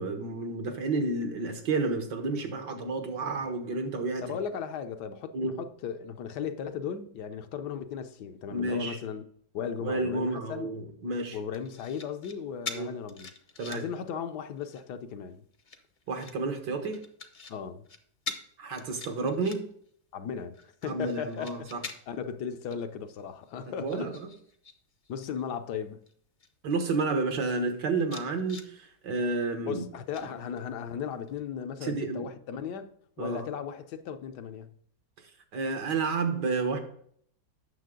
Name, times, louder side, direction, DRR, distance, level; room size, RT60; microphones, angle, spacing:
voice 1, 0.0-4.4 5.3-5.6 8.5-9.0 9.8-11.4 12.7-12.9 13.6-13.9 16.1-17.0 18.6-19.6 20.8-21.8 23.8-24.1 26.6-29.8 31.8-32.3 33.2-33.5 35.5-36.8, right 3 dB, 80° right, 1.9 m, -30 dB
voice 2, 4.2-9.2 9.5-10.7 11.3-13.3 13.7-15.4 17.5-17.9 20.1-20.5 20.8-21.7 22.1-24.1 25.1-26.0 29.7-34.7, left 7 dB, 75° left, 1.3 m, -36 dB
sound 1, 11.5-12.3 12.7-14.0 14.4-14.9 15.5-16.4 16.9-17.5 17.8-18.0 18.3-18.4 18.8-19.9 20.3-22.2 22.7-22.8 23.2-24.7 25.0-25.4 26.1-26.2 26.4-27.1 27.5-27.6 28.0-28.7 30.1-30.8 31.3-31.4, left 4 dB, 40° left, 0.7 m, -43 dB
9.3 x 6.8 x 3.7 m
omnidirectional pair, 1.8 m